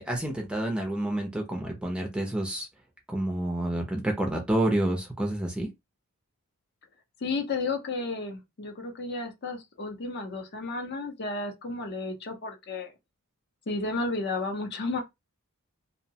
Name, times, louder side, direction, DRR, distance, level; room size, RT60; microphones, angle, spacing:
voice 1, 0.0-2.7 3.1-5.7, right 1 dB, 5° right, 0.4 m, -29 dB
voice 2, 7.2-12.9 13.7-15.0, left 3 dB, 50° left, 0.6 m, -32 dB
2.7 x 2.1 x 2.7 m
head